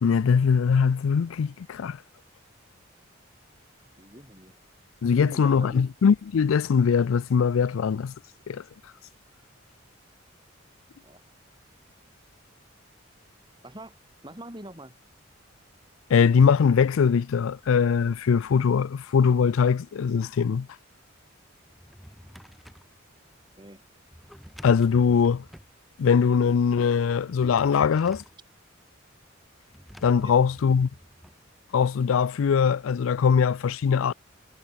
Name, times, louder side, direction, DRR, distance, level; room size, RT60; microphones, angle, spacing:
voice 1, 0.0-2.0 5.0-8.1 8.5-8.6 16.1-20.7 24.6-25.4 26.0-28.2 30.0-30.9 31.7-34.1, left 6 dB, 90° left, 0.4 m, -21 dB
voice 2, 4.0-4.5 5.0-5.8 11.0-11.2 13.6-14.0 14.2-15.0 23.6-23.8 30.2-30.4, right 1 dB, 20° right, 7.6 m, -44 dB
Drawer open or close, 21.6-22.9 24.1-25.8 27.1-28.4 29.7-31.4, equal, ahead, 3.5 m, -48 dB
head